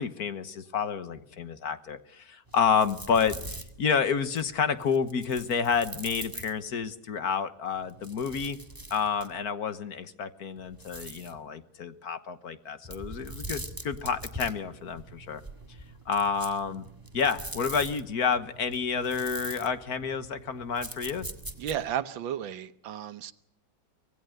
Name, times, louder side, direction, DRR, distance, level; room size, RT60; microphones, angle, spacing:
voice 1, 0.0-8.6 8.9-15.4 16.1-16.9 17.1-21.3, left 6 dB, 55° left, 12 dB, 1.6 m, -29 dB
sound 1, 2.5-6.9 7.7-9.5 10.6-11.4 12.8-22.0, right 1 dB, 10° right, 1.6 m, -43 dB
voice 2, 21.6-23.3, right 9 dB, 85° right, 13 dB, 1.7 m, -33 dB
25.0 x 18.5 x 6.6 m, 0.79 s
omnidirectional pair, 2.0 m